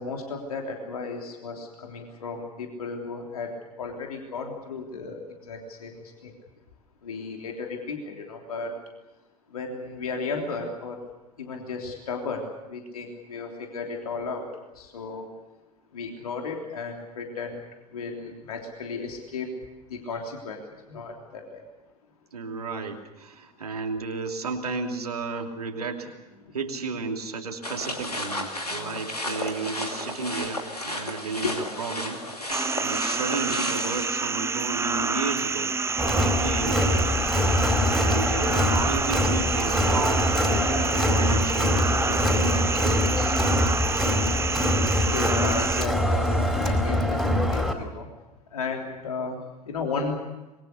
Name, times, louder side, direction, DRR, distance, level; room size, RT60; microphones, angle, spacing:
voice 1, 0.0-3.5 3.8-5.2 5.5-5.9 6.2-6.3 7.0-8.7 9.5-11.0 11.4-14.4 14.8-15.3 15.9-17.6 17.9-19.5 19.9-20.6 20.9-21.6 31.4-31.5 45.1-48.1 48.5-49.4 49.7-50.2, left 4 dB, 75° left, 2 dB, 3.4 m, -34 dB
voice 2, 22.3-26.2 26.5-32.2 32.8-37.1 37.9-43.6, right 4 dB, 80° right, 3 dB, 2.9 m, -33 dB
sound 1, 27.6-34.1, left 1 dB, 90° left, 2.5 m, -33 dB
sound 2, 32.5-45.9, right 4 dB, 15° right, 0.9 m, -28 dB
Crowd, 36.0-47.7, left 1 dB, ahead, 4.4 m, -24 dB
25.5 x 23.0 x 6.7 m, 1.1 s
figure-of-eight pair, 75°, 19 cm